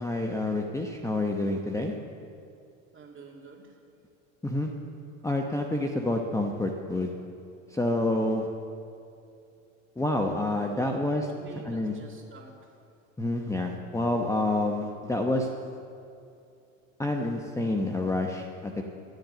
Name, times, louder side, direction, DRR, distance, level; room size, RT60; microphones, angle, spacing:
voice 1, 0.0-1.9 4.4-4.7 5.2-7.1 7.7-8.5 10.0-11.3 11.6-11.9 13.2-15.5 17.0-18.8, left 2 dB, 10° left, 2 dB, 0.9 m, -28 dB
voice 2, 2.9-3.8 10.7-12.8 14.3-14.5, right 4 dB, 30° right, 0 dB, 2.5 m, -47 dB
12.0 x 7.9 x 7.9 m, 2.6 s
hypercardioid pair, 85°, 39 cm